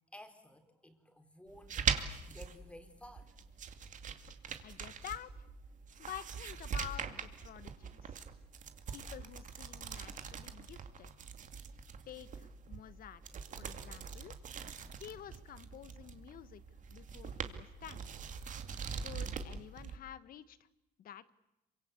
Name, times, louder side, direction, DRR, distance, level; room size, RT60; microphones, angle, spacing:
voice 1, 0.1-3.4, left 1 dB, 5° left, 7 dB, 4.2 m, -55 dB
sound 1, 1.5-20.0, right 6 dB, 50° right, 2.4 m, -42 dB
voice 2, 4.6-5.5 6.0-8.2 8.9-11.1 12.1-13.2 13.5-14.4 15.0-16.6 16.9-18.1 19.0-20.6 21.0-21.3, left 10 dB, 60° left, 15 dB, 1.5 m, -49 dB
27.5 x 25.0 x 8.3 m, 0.92 s
cardioid pair, 110°, 17 cm